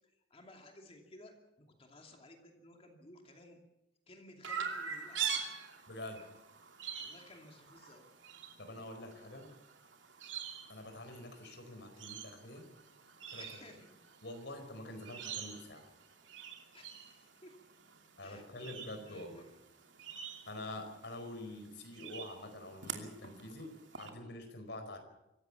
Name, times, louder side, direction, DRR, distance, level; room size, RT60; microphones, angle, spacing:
voice 1, 0.3-3.6 4.1-5.4 6.9-8.0 13.4-14.0 16.7-17.5 18.2-18.7 19.0-19.6, left 1 dB, 30° left, 3 dB, 2.7 m, -57 dB
Chirp tweet, 4.4-24.1, right 7 dB, 75° right, 2.7 m, -45 dB
voice 2, 5.9-6.3 8.6-9.5 10.7-12.7 13.3-13.6 14.2-15.9 18.2-19.5 20.5-25.0, left 1 dB, 65° left, 6 dB, 4.8 m, -46 dB
25.0 x 15.0 x 7.2 m, 0.90 s
head